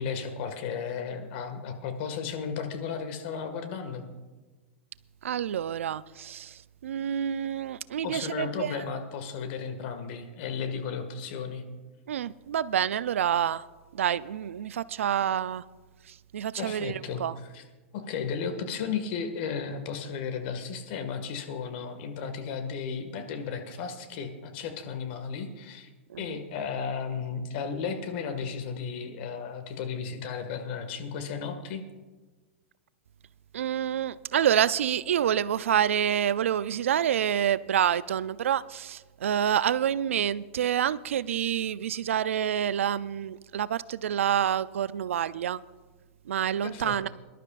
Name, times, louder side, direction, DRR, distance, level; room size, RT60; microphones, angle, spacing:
voice 1, 0.0-4.0 8.0-11.7 16.6-17.2 17.5-17.6 17.9-25.9 26.2-31.8 46.6-47.1, left 6 dB, 55° left, 7 dB, 1.8 m, -34 dB
voice 2, 5.2-8.8 12.1-13.6 13.9-15.6 16.1-17.3 26.1-26.4 33.5-45.6 46.3-47.1, right 9 dB, 80° right, 18 dB, 0.4 m, -28 dB
23.0 x 12.0 x 2.5 m, 1.3 s
hypercardioid pair, 115°, 7 cm